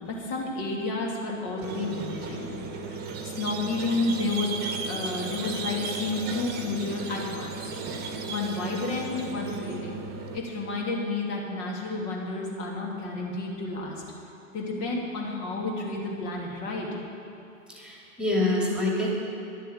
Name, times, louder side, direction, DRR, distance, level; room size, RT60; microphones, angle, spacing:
voice 1, 0.0-2.9 3.2-4.5 4.9-7.6 8.3-10.1 10.3-14.0 14.5-17.0, left 3 dB, 40° left, -2 dB, 2.8 m, -31 dB
Squeak, 1.6-10.4, right 4 dB, 25° right, 1.4 m, -35 dB
voice 2, 17.7-19.1, left 2 dB, ahead, -3 dB, 2.4 m, -26 dB
11.5 x 7.4 x 8.7 m, 2.7 s
figure-of-eight pair, 105°, 41 cm